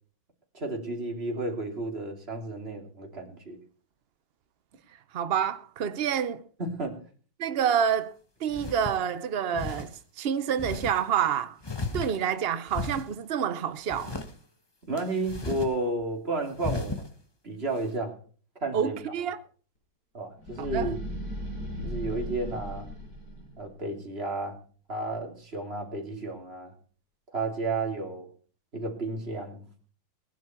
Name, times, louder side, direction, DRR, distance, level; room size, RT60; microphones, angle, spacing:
voice 1, 0.5-3.6 6.6-7.0 14.8-17.1 17.4-18.2 18.6-19.0 20.1-21.0 21.8-22.9 23.6-24.6 24.9-26.7 27.3-28.3 28.7-29.6, right 2 dB, 30° right, 3.4 m, -32 dB
voice 2, 5.1-6.4 7.4-8.1 8.4-11.6 11.9-14.2 18.7-19.4 20.7-20.9, right 8 dB, 70° right, 0.5 m, -28 dB
sound 1, 7.9-8.0 8.5-9.0 9.5-9.9 10.6-11.0 11.6-12.4 12.7-13.1 13.9-14.3 15.0-15.7 16.0-16.1 16.6-17.1, left 2 dB, 15° left, 0.9 m, -35 dB
sound 2, 20.4-23.7, equal, 50° left, 7.0 m, -36 dB
20.0 x 10.5 x 4.5 m
omnidirectional pair, 2.1 m